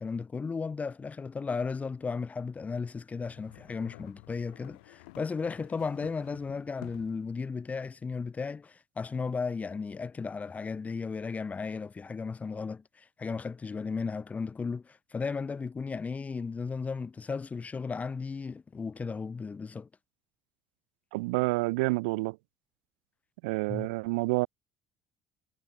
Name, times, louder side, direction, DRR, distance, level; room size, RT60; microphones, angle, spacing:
voice 1, 0.0-19.9 23.7-23.9, left 5 dB, 30° left, 1.6 m, -35 dB
sound 1, 3.2-7.3, left 26 dB, 80° left, 5.4 m, -51 dB
voice 2, 21.1-22.4 23.4-24.5, right 25 dB, 80° right, 0.3 m, -28 dB
hypercardioid pair, 70°, 5 cm